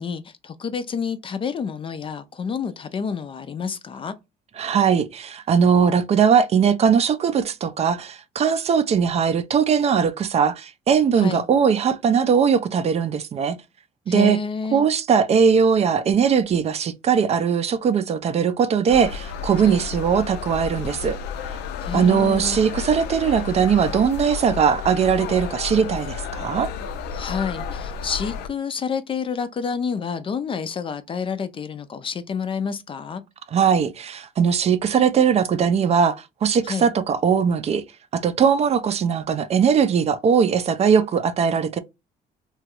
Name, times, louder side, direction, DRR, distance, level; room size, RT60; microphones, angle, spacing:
voice 1, 0.0-4.1 11.2-11.5 14.1-14.9 19.6-19.8 21.8-22.6 27.1-33.2 36.6-36.9, left 6 dB, 30° left, 0.4 m, -29 dB
voice 2, 4.6-13.6 14.1-14.4 14.7-21.2 21.9-26.7 33.5-37.8 38.1-41.8, right 7 dB, 40° right, 0.4 m, -20 dB
sound 1, 18.9-28.5, left 7 dB, 85° left, 0.5 m, -32 dB
2.9 x 2.3 x 2.9 m
cardioid pair, 110°, 17 cm